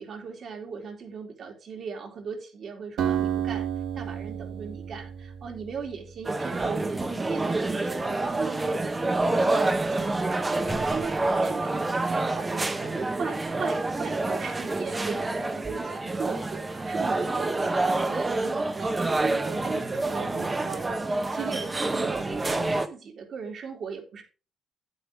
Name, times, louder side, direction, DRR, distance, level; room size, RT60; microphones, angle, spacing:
voice 1, 0.0-3.7 3.9-20.9 21.3-24.2, right 5 dB, 60° right, 3 dB, 2.9 m, -38 dB
Acoustic guitar, 3.0-6.6, right 9 dB, 75° right, 1.6 m, -31 dB
sound 1, 6.2-22.9, right 2 dB, 25° right, 1.1 m, -27 dB
9.2 x 8.2 x 3.6 m, 0.34 s
cardioid pair, 90°, 0 cm